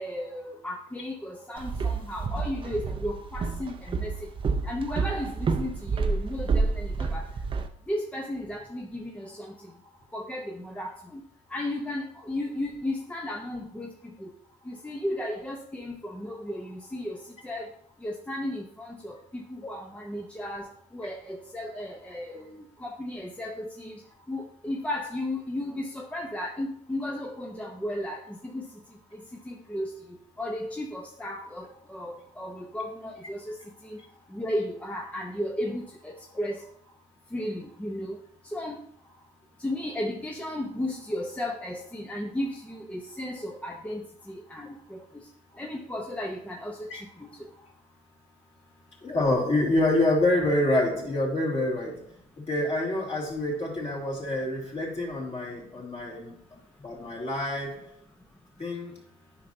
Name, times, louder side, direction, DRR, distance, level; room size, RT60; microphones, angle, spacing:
voice 1, 0.0-4.1 4.7-7.3 7.9-9.5 10.1-11.2 11.5-14.3 14.7-17.2 17.4-17.7 18.0-23.9 24.3-28.7 29.5-29.9 30.4-33.6 33.8-34.0 34.3-36.6 37.3-38.2 38.5-38.8 39.6-45.2 45.6-46.9 47.2-47.3, left 1 dB, 10° left, 0 dB, 0.7 m, -34 dB
Walk footsteps, 1.6-7.7, right 4 dB, 30° right, 0.6 m, -29 dB
voice 2, 49.0-56.3 56.8-57.9 58.6-59.0, left 1 dB, 40° left, -2 dB, 2.8 m, -27 dB
9.6 x 5.7 x 2.7 m, 0.62 s
cardioid pair, 110°, 17 cm